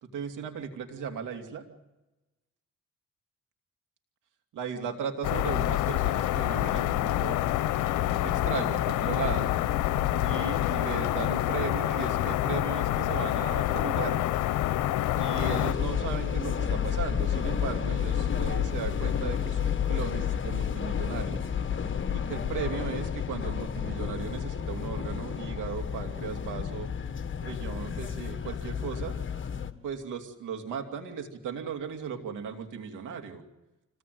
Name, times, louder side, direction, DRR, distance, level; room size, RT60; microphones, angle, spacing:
voice 1, 0.0-1.7 4.5-7.4 8.2-9.5 10.2-14.2 15.1-21.5 22.1-26.9 27.4-29.1 29.8-33.4, right 6 dB, 85° right, 5 dB, 2.8 m, -36 dB
sound 1, 5.2-15.7, left 14 dB, 90° left, 0.9 m, -27 dB
Telephone, 7.8-11.0, right 6 dB, 65° right, 7.0 m, -45 dB
sound 2, 15.4-29.7, left 8 dB, 40° left, 1.7 m, -31 dB
25.5 x 16.5 x 9.3 m, 1.0 s
cardioid pair, 90°, 30 cm